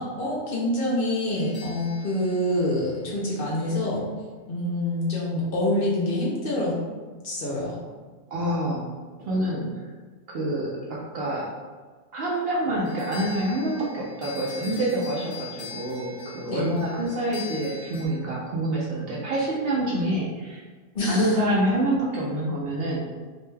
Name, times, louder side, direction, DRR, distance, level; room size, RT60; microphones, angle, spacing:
voice 1, 0.0-4.0 4.5-6.7 7.2-7.8 16.5-16.7 20.9-21.4, left 1 dB, 55° left, -5 dB, 0.7 m, -26 dB
sound 1, 1.3-3.6 12.8-18.1, left 5 dB, 20° right, 0.8 m, -43 dB
voice 2, 8.3-8.8 9.2-9.7 10.3-11.5 12.1-20.6 21.1-23.0, right 1 dB, 65° right, -4 dB, 0.6 m, -26 dB
2.6 x 2.2 x 3.1 m, 1.4 s
omnidirectional pair, 1.4 m